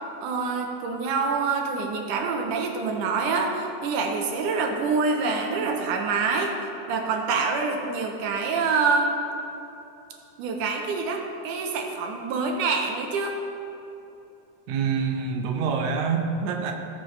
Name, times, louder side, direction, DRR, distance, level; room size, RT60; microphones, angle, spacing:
voice 1, 0.2-6.5 6.9-9.1 10.4-13.4, right 4 dB, 90° right, 2 dB, 2.5 m, -26 dB
voice 2, 14.7-16.7, right 5 dB, 70° right, 2 dB, 2.1 m, -26 dB
17.5 x 6.6 x 3.3 m, 2.9 s
omnidirectional pair, 3.6 m